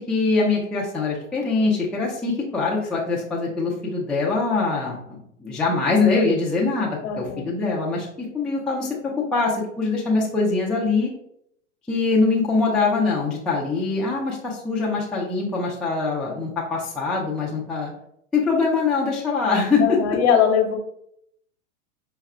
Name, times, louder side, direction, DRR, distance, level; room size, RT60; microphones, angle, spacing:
voice 1, 0.1-11.1 11.9-17.9 18.3-20.0, left 4 dB, ahead, -4 dB, 0.4 m, -23 dB
voice 2, 7.0-7.6 19.8-20.8, left 7 dB, 50° left, 4 dB, 1.0 m, -21 dB
4.9 x 2.3 x 4.2 m, 0.72 s
hypercardioid pair, 125°, 40 cm